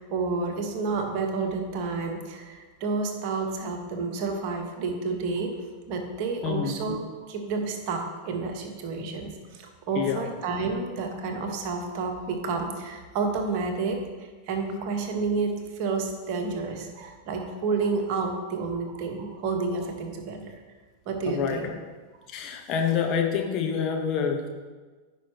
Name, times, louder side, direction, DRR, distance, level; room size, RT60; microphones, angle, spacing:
voice 1, 0.0-5.6 5.9-20.5 21.1-21.7, right 4 dB, 45° right, 4 dB, 1.3 m, -30 dB
voice 2, 6.4-6.8 9.9-10.2 21.3-21.8 22.3-24.5, left 7 dB, 35° left, 2 dB, 1.2 m, -27 dB
15.0 x 5.6 x 3.0 m, 1.4 s
figure-of-eight pair, 90°, 0 cm